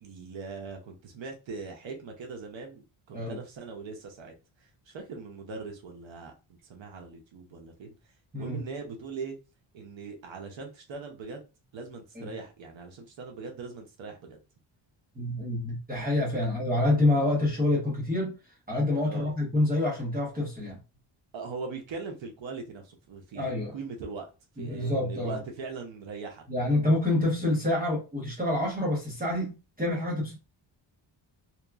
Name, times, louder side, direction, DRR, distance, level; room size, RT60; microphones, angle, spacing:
voice 1, 0.0-6.3 6.6-7.9 8.3-9.3 9.7-11.5 11.7-14.4 19.0-19.3 21.3-24.3 24.6-26.4, right 4 dB, 65° right, 0.7 m, -40 dB
voice 2, 15.1-18.3 18.7-20.8 23.3-23.7 24.6-25.4 26.5-30.4, left 1 dB, 20° right, 0.8 m, -27 dB
2.8 x 2.3 x 2.2 m
wide cardioid pair, 155°, 49 cm